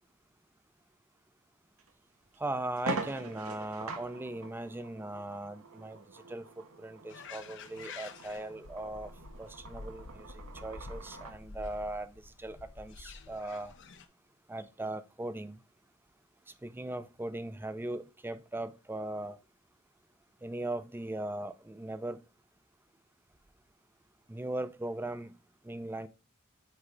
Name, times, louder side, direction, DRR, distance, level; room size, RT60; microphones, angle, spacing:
sound 1, 1.8-1.9 2.3-2.4 2.8-11.4, right 3 dB, 85° right, 0.9 m, -43 dB
voice 1, 2.4-6.5 6.8-9.1 9.4-13.7 14.5-15.6 16.6-19.4 20.4-22.2 24.3-25.4 25.6-26.1, right 1 dB, 10° right, 0.4 m, -39 dB
sound 2, 7.1-14.1, left 3 dB, 60° left, 0.7 m, -48 dB
8.1 x 3.2 x 3.8 m
head